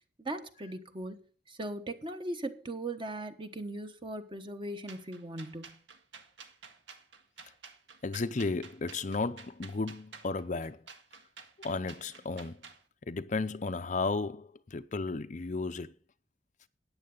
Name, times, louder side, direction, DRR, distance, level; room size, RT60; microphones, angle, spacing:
voice 1, 0.2-5.8, right 1 dB, 30° right, 1.2 m, -39 dB
sound 1, 4.9-12.8, right 5 dB, 85° right, 1.7 m, -51 dB
voice 2, 8.0-10.8 11.6-12.6 13.1-15.9, left 3 dB, 40° left, 0.6 m, -34 dB
14.0 x 9.7 x 3.9 m
head